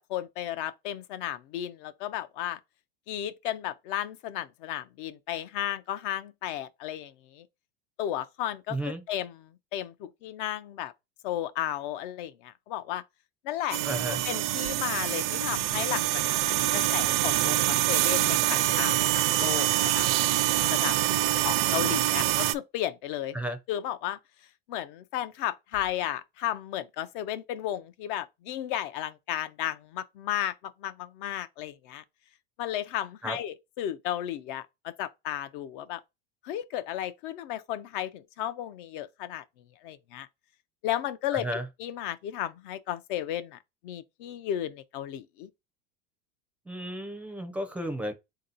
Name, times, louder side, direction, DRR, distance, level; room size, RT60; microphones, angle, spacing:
voice 1, 0.0-2.6 3.1-7.4 8.0-10.9 11.2-13.0 13.4-13.8 14.2-20.1 20.7-21.0 21.4-23.4 23.7-24.2 24.7-32.0 32.6-36.0 36.4-39.4 39.8-40.3 40.8-41.5 41.8-43.6 43.8-45.5, left 12 dB, 60° left, 0.5 m, -34 dB
voice 2, 8.7-9.0 13.8-14.2 23.3-23.6 33.2-33.4 41.3-41.7 46.7-48.1, right 1 dB, 5° right, 0.4 m, -33 dB
sound 1, 13.7-22.5, right 15 dB, 75° right, 0.5 m, -25 dB
3.7 x 2.8 x 3.8 m
supercardioid pair, 150°, 29 cm